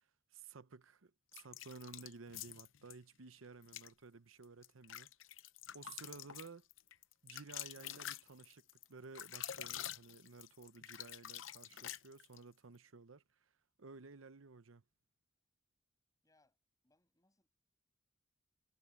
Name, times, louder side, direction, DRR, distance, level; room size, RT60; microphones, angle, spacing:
voice 1, 0.3-5.1 5.7-6.6 7.2-13.5 13.8-14.8, right 4 dB, 90° right, 0.9 m, -55 dB
sound 1, 1.3-3.0 3.6-3.9 4.4-12.4, left 11 dB, 70° left, 0.7 m, -47 dB
voice 2, 16.2-16.6 16.8-17.5, left 2 dB, 20° left, 6.6 m, -75 dB
head